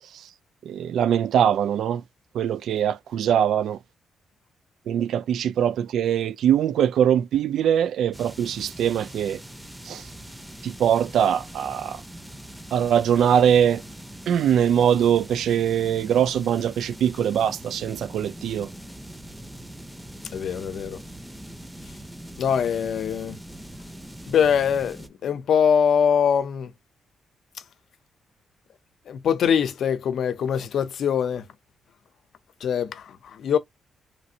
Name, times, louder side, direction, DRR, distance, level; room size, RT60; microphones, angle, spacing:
voice 1, 0.7-2.0 2.3-3.8 4.9-9.4 9.8-10.1 10.6-12.0 12.7-13.8 14.3-18.7, right 9 dB, 80° right, 0.3 m, -22 dB
sound 1, 8.1-25.1, right 1 dB, 5° right, 0.5 m, -42 dB
voice 2, 20.3-21.0 22.4-23.4 24.3-26.7 29.1-31.4 32.6-33.6, left 7 dB, 70° left, 0.5 m, -23 dB
3.1 x 2.5 x 2.7 m
cardioid pair, 105°, 0 cm